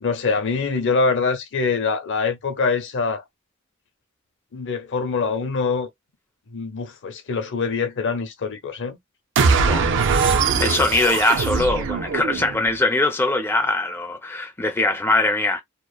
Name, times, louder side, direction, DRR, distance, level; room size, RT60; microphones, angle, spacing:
voice 1, 0.0-3.2 4.5-5.9 6.5-9.0, left 4 dB, 55° left, 0.6 m, -24 dB
sound 1, 9.4-12.7, right 5 dB, 60° right, 0.4 m, -21 dB
voice 2, 10.6-15.6, left 2 dB, 10° left, 0.4 m, -21 dB
2.9 x 2.0 x 2.2 m
head